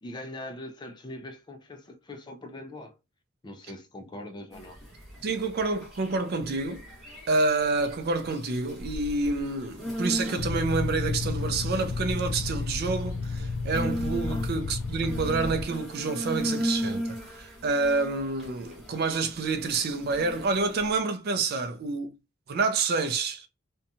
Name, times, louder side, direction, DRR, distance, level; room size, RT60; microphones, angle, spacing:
voice 1, 0.0-3.0 3.4-4.8 14.3-14.5, left 1 dB, 20° left, 0.3 m, -42 dB
sound 1, 4.5-21.0, equal, ahead, 1.0 m, -37 dB
voice 2, 5.2-6.8 7.3-22.1 22.5-23.5, right 3 dB, 45° right, 0.4 m, -28 dB
sound 2, 10.4-15.6, left 3 dB, 85° left, 0.4 m, -31 dB
2.7 x 2.2 x 2.5 m
head